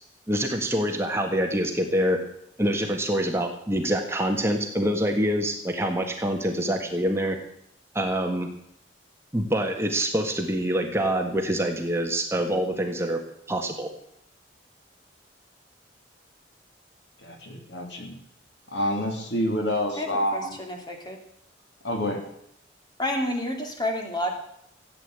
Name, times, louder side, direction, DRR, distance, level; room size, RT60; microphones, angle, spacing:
voice 1, 0.3-2.2 2.6-7.4 7.9-8.5 9.3-13.2 13.5-13.9, equal, 15° right, 3 dB, 1.6 m, -25 dB
voice 2, 17.2-18.2 18.7-20.6 21.8-22.3, equal, 65° left, 3 dB, 3.1 m, -28 dB
voice 3, 19.9-21.2 23.0-24.3, left 1 dB, 20° left, 3 dB, 2.9 m, -30 dB
15.5 x 9.2 x 8.1 m, 0.74 s
head